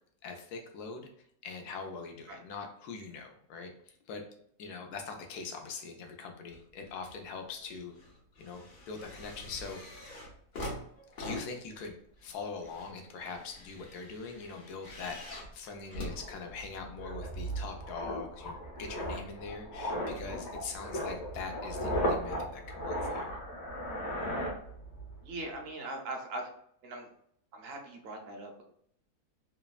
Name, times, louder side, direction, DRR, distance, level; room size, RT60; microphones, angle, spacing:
voice 1, 0.2-1.1 1.4-4.3 4.6-7.9 8.4-10.0 11.2-12.0 12.2-23.3, left 4 dB, 90° left, 4 dB, 1.1 m, -42 dB
sound 1, 6.5-7.2 7.6-17.0 17.7-17.8, left 1 dB, 45° left, 0.8 m, -45 dB
sound 2, 15.7-15.8 16.1-25.2 25.4-25.7, equal, 65° left, 1.3 m, -36 dB
voice 2, 25.2-26.5 26.8-27.1 27.5-28.6, right 2 dB, 65° right, 2 dB, 0.6 m, -40 dB
3.2 x 2.1 x 2.3 m, 0.69 s
omnidirectional pair, 1.6 m